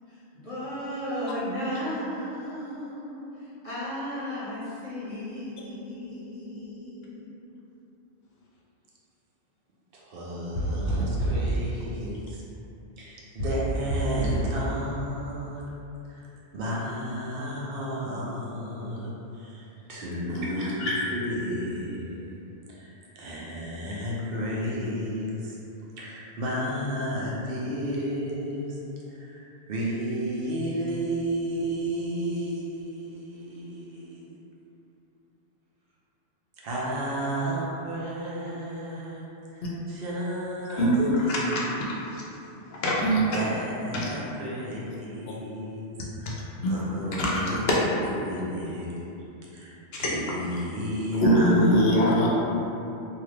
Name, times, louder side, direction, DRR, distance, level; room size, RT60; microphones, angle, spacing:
voice 1, 0.1-7.2, equal, 35° left, -13 dB, 1.1 m, -35 dB
voice 2, 9.9-12.4 13.0-15.6 16.1-22.4 22.7-25.6 26.0-28.8 29.1-34.4 36.6-40.9 41.2-41.7 43.3-46.4 46.7-47.6 48.0-49.1 49.5-52.3, equal, 60° right, -6 dB, 0.8 m, -32 dB
sound 1, 10.5-11.5 13.4-14.6, right 1 dB, 90° right, 1.4 m, -28 dB
voice 3, 20.3-21.1 40.8-41.9 42.1-42.2 42.8-43.2 43.9-44.1 46.3-46.4 46.6-46.7 47.2-47.4 49.9-50.1 51.2-52.3, equal, 65° left, -5 dB, 0.8 m, -23 dB
2.8 x 2.3 x 3.2 m, 2.8 s
omnidirectional pair, 1.1 m